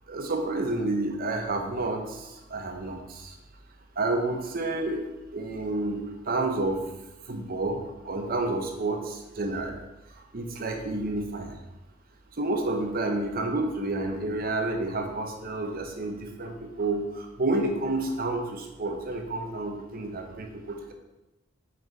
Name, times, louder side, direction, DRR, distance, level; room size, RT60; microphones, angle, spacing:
voice 1, 0.1-3.3 4.0-5.0 5.3-6.8 7.3-9.7 10.3-11.5 12.4-20.9, right 2 dB, 50° right, 4 dB, 1.0 m, -30 dB
5.8 x 5.3 x 4.5 m, 0.99 s
head